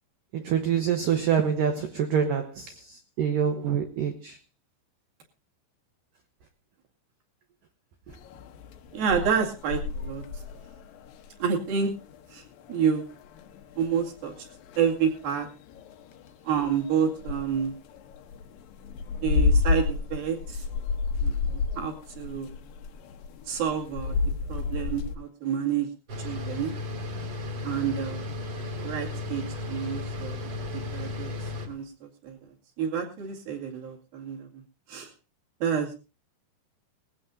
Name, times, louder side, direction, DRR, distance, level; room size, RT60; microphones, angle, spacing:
voice 1, 0.3-4.4, right 7 dB, 85° right, 1.9 m, -26 dB
sound 1, 8.1-25.2, left 4 dB, 75° left, 2.2 m, -31 dB
voice 2, 8.9-10.2 11.4-11.9 12.3-12.4 12.7-13.0 13.8-14.4 14.8-15.5 16.4-17.7 19.2-20.6 21.2-22.5 23.5-24.2 24.5-25.9 26.2-26.8 27.6-28.3 28.8-30.4 30.7-31.3 31.7-32.4 32.8-34.6 34.9-35.1 35.6-36.0, right 7 dB, 55° right, 3.7 m, -29 dB
sound 2, 26.1-31.7, left 3 dB, 40° right, 2.5 m, -34 dB
19.5 x 16.0 x 2.7 m
omnidirectional pair, 5.4 m